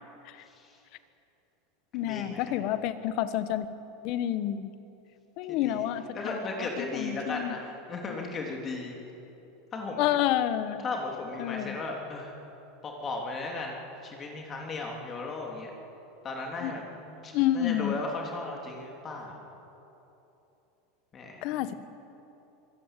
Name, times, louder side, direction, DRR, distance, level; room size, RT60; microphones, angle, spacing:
voice 1, 0.5-0.8 2.0-2.6 5.5-9.0 9.7-10.1 10.8-12.3 12.8-15.7 16.2-19.4 21.1-21.5, left 3 dB, 25° left, 0 dB, 3.3 m, -36 dB
voice 2, 1.9-3.7 4.0-4.7 5.4-7.6 8.1-8.2 10.0-10.8 11.4-11.8 16.6-16.7 17.3-17.9 21.4-21.7, left 12 dB, 55° left, 12 dB, 1.3 m, -29 dB
24.0 x 16.5 x 9.1 m, 3.0 s
supercardioid pair, 140°, 0 cm